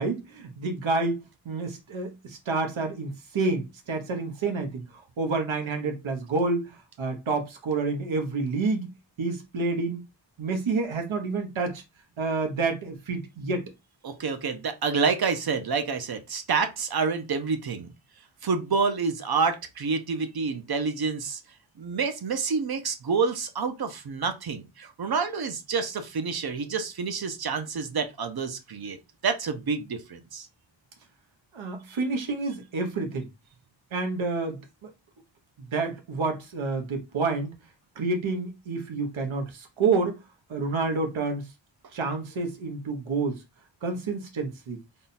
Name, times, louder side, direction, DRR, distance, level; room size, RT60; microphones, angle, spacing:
voice 1, 0.0-4.8 5.2-8.9 9.2-10.0 10.4-11.8 12.2-13.6 31.5-33.3 33.9-34.9 35.7-37.5 38.0-40.2 40.5-41.4 41.9-43.4 43.8-44.8, right 3 dB, 85° right, 1.2 m, -29 dB
voice 2, 14.0-17.9 18.4-21.4 21.8-29.0 29.2-30.5, right 5 dB, 55° right, 0.7 m, -28 dB
3.7 x 2.3 x 4.1 m
wide cardioid pair, 150°, 46 cm